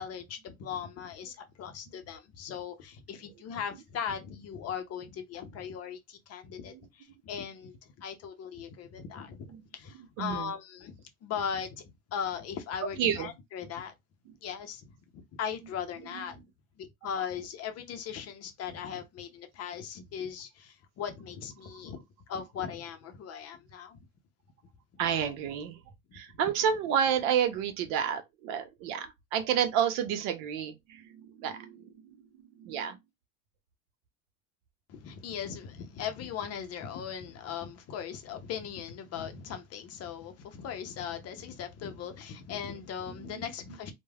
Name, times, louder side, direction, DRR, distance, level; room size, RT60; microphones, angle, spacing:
voice 1, 0.0-9.5 9.7-11.8 12.1-13.9 14.4-16.4 16.8-22.0 22.3-24.0 25.2-25.3 26.1-26.2 34.9-43.9, left 7 dB, 40° left, 0.6 m, -39 dB
voice 2, 10.2-10.5 13.0-13.3 16.1-16.2 25.0-25.8 26.1-32.2 32.6-33.0 43.2-43.4, right 8 dB, 60° right, 0.7 m, -30 dB
3.1 x 2.2 x 2.3 m
hypercardioid pair, 85°, 40 cm